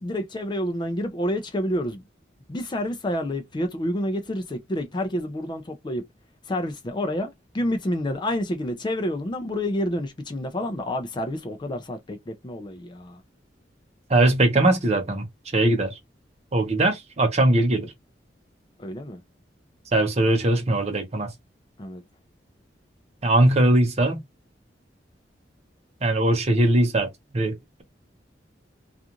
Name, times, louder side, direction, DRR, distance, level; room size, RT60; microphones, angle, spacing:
voice 1, 0.0-2.0 2.5-6.0 6.5-13.2 18.8-19.2 21.8-22.0, left 1 dB, 25° left, 0.4 m, -29 dB
voice 2, 14.1-15.2 15.5-16.0 16.5-17.9 19.9-21.3 23.2-24.2 26.0-27.1 27.3-27.5, right 1 dB, 40° right, 0.8 m, -20 dB
2.4 x 2.4 x 2.9 m
head